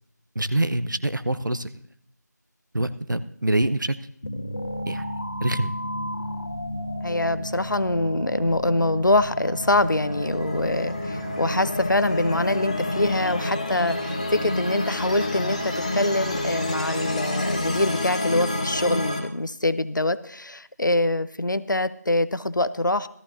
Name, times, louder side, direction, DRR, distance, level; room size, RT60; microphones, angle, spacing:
voice 1, 0.3-1.7 2.7-4.0 4.9-5.0 5.4-5.7, right 1 dB, 90° right, 13 dB, 0.9 m, -25 dB
sound 1, 4.2-13.5, left 1 dB, 50° left, 2.0 m, -33 dB
voice 2, 7.0-23.1, left 2 dB, 85° left, 14 dB, 0.8 m, -24 dB
sound 2, 9.3-19.2, left 2 dB, 20° left, 0.8 m, -29 dB
17.5 x 14.0 x 2.7 m, 0.65 s
figure-of-eight pair, 175°, 10 cm